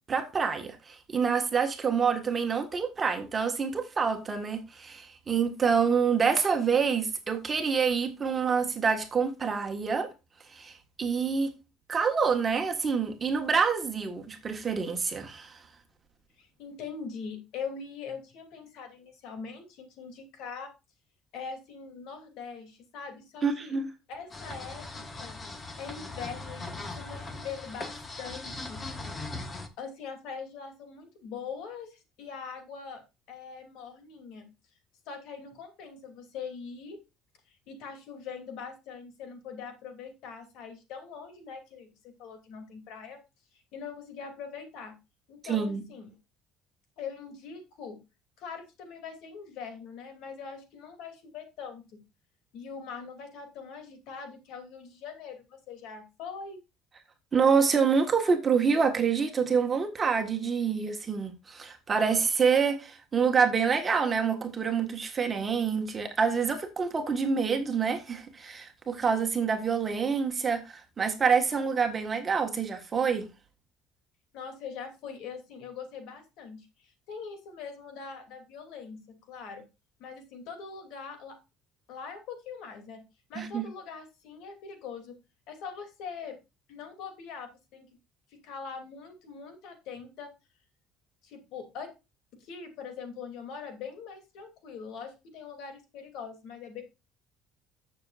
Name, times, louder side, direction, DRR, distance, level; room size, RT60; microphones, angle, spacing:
voice 1, 0.1-10.1 10.5-11.5 11.9-15.6 23.4-23.9 45.5-45.8 57.3-73.3 83.3-83.6, right 6 dB, 20° right, 1.5 m, -27 dB
voice 2, 16.4-20.7 21.3-23.7 24.1-25.4 25.8-29.1 29.8-33.0 33.3-34.5 35.1-37.0 37.5-41.9 42.2-43.2 43.5-45.0 45.3-46.1 47.0-48.0 48.4-51.9 52.5-56.6 74.3-79.6 80.0-81.4 81.9-83.0 83.3-85.1 85.5-86.4 86.7-87.9 88.3-90.3 91.2-91.9 92.3-96.8, left 6 dB, 65° left, 2.8 m, -42 dB
sound 1, 24.3-29.7, left 2 dB, 20° left, 1.3 m, -39 dB
14.5 x 6.9 x 2.5 m
cardioid pair, 170°, 0 cm